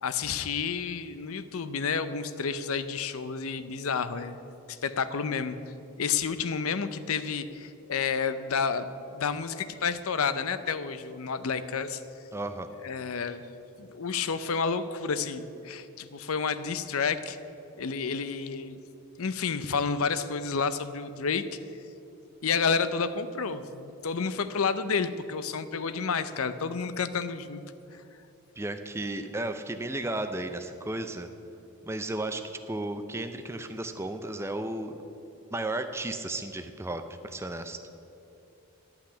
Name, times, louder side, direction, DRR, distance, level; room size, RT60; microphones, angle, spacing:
voice 1, 0.0-4.4 4.7-5.6 6.0-12.0 12.8-13.4 13.8-17.4 17.8-18.8 19.2-21.4 22.4-27.6 27.9-28.0, left 5 dB, 70° left, 12 dB, 0.6 m, -30 dB
voice 2, 12.3-12.7 28.6-31.3 31.8-35.0 35.5-37.8, right 2 dB, 10° right, 7 dB, 0.4 m, -34 dB
11.5 x 5.9 x 8.8 m, 2.7 s
head